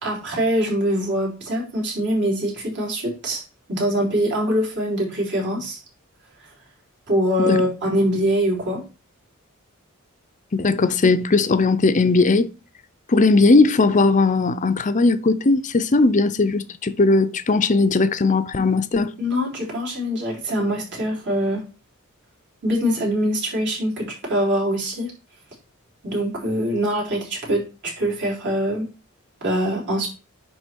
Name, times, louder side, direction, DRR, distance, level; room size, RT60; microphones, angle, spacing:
voice 1, 0.0-3.4 3.7-5.8 7.1-8.8 19.2-21.6 22.6-25.1 26.0-28.9 29.4-30.1, equal, 55° right, 3.8 m, -23 dB
voice 2, 10.5-12.5 13.1-19.1, left 3 dB, 35° left, 0.6 m, -18 dB
9.9 x 3.8 x 4.5 m
head